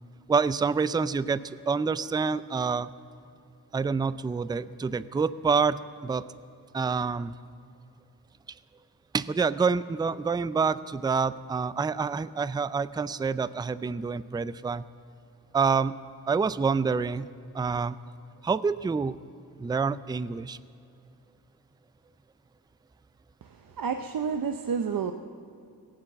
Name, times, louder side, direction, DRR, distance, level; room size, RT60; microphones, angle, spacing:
voice 1, 0.3-2.9 3.7-6.2 6.7-7.3 9.1-14.8 15.5-16.0 16.3-17.3 17.5-18.0 18.4-19.2 19.6-20.6, right 5 dB, 10° right, 16 dB, 0.3 m, -27 dB
voice 2, 23.8-25.1, right 6 dB, 65° right, 7 dB, 0.6 m, -29 dB
17.5 x 9.0 x 7.1 m, 2.4 s
wide cardioid pair, 70°, 38 cm